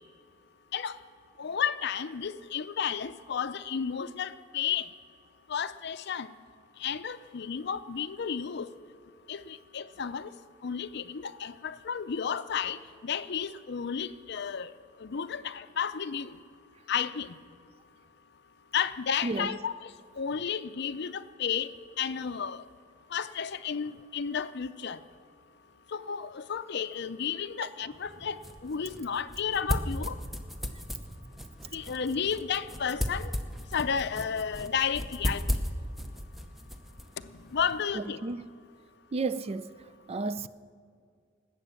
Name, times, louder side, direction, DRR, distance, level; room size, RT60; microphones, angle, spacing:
voice 1, 1.4-4.9 5.5-6.3 6.8-8.7 9.3-10.3 10.6-14.7 15.0-16.4 16.9-17.4 18.7-21.7 22.0-22.6 23.1-25.0 25.9-30.2 31.7-33.3 33.7-35.4 37.5-38.2, left 7 dB, 60° left, 0.5 m, -32 dB
sound 1, 27.9-37.8, equal, ahead, 0.7 m, -36 dB
voice 2, 37.9-38.5 39.1-39.8 40.1-40.5, right 3 dB, 30° right, 0.3 m, -32 dB
19.5 x 8.4 x 7.2 m
head